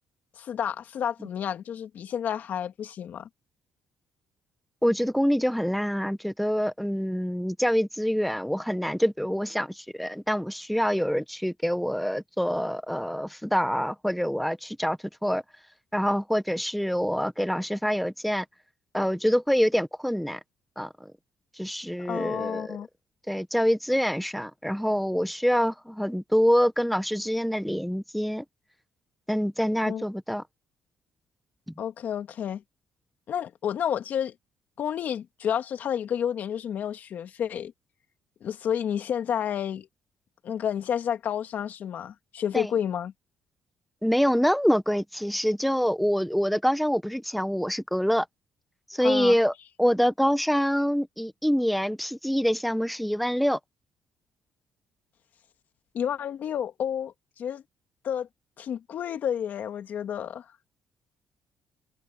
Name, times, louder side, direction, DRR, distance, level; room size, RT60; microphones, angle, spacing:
voice 1, 0.4-3.3 22.0-22.9 29.9-30.0 31.8-32.6 33.3-34.3 34.8-37.7 38.4-39.9 40.4-43.1 49.0-49.4 55.9-57.6 58.0-58.3 58.6-60.5, left 9 dB, 60° left, 2.1 m, -30 dB
voice 2, 4.8-15.4 15.9-18.4 18.9-20.4 20.8-21.1 21.6-22.8 23.3-28.4 29.3-30.4 42.5-42.7 44.0-48.3 48.9-49.5 49.8-53.6, equal, ahead, 1.0 m, -25 dB
cardioid pair, 115°, 3 cm